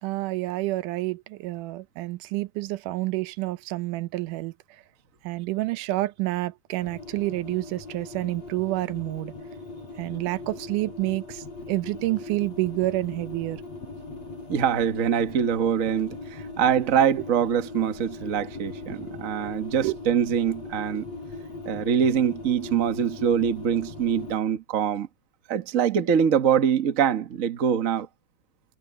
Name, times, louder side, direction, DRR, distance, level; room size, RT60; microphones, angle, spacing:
voice 1, 0.0-4.5 5.2-9.3 10.0-13.6 19.7-20.0, right 18 dB, 90° right, 2.3 m, -29 dB
sound 1, 6.8-24.4, left 3 dB, 55° left, 8.1 m, -39 dB
voice 2, 14.5-21.1 21.6-25.1 25.5-28.1, right 8 dB, 55° right, 0.9 m, -24 dB
omnidirectional pair, 3.6 m